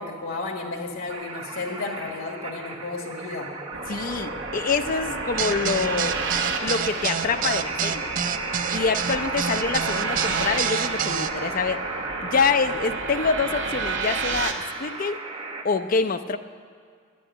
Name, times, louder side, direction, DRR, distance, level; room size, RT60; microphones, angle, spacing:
voice 1, 0.0-3.5, left 3 dB, 90° left, 2 dB, 1.5 m, -33 dB
sound 1, 1.1-15.6, right 3 dB, 25° right, 0.9 m, -35 dB
sound 2, 3.7-14.5, right 4 dB, 60° right, 1.0 m, -31 dB
voice 2, 3.9-6.2 6.6-8.1 8.7-11.8 12.2-15.2 15.6-16.4, left 5 dB, 45° left, 10 dB, 0.5 m, -26 dB
sound 3, 5.4-11.3, right 8 dB, 40° right, 0.3 m, -28 dB
10.0 x 8.7 x 9.7 m, 2.1 s
head